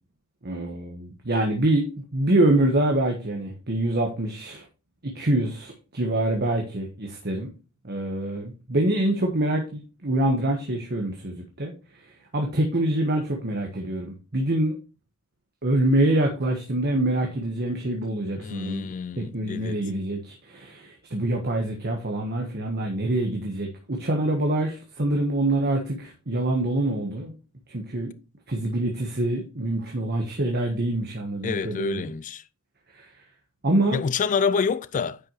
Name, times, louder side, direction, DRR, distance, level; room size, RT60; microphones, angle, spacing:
voice 1, 0.4-4.6 5.0-7.5 7.8-11.7 12.3-14.7 15.6-27.3 27.7-28.1 28.5-32.0 32.9-33.1 33.6-34.0, right 1 dB, 45° right, 1.3 m, -25 dB
voice 2, 18.4-19.8 31.4-32.4 33.9-35.2, left 5 dB, 35° left, 0.3 m, -27 dB
9.7 x 5.7 x 3.1 m
head